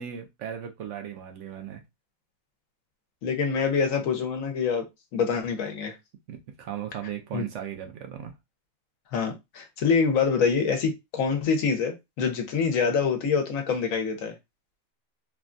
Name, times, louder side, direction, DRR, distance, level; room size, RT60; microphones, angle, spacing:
voice 1, 0.0-1.8 6.3-8.3, right 9 dB, 65° right, 0.8 m, -37 dB
voice 2, 3.2-4.9 5.1-6.0 7.3-7.4 9.1-14.3, left 5 dB, 75° left, 1.1 m, -25 dB
3.3 x 2.2 x 2.5 m
omnidirectional pair, 1.5 m